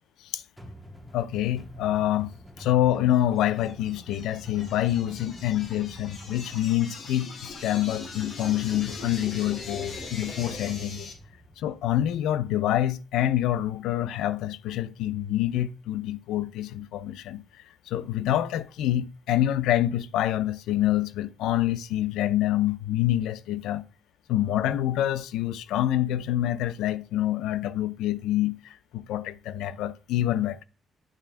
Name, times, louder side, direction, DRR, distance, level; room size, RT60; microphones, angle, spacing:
sound 1, 0.6-12.5, equal, 5° left, 1.7 m, -47 dB
voice 1, 1.1-2.3 2.6-11.1 11.6-17.4 17.9-23.8 24.3-30.6, left 13 dB, 90° left, 0.5 m, -26 dB
sound 2, 3.1-11.1, left 4 dB, 60° left, 2.3 m, -41 dB
9.1 x 3.4 x 5.8 m
cardioid pair, 90°, 0 cm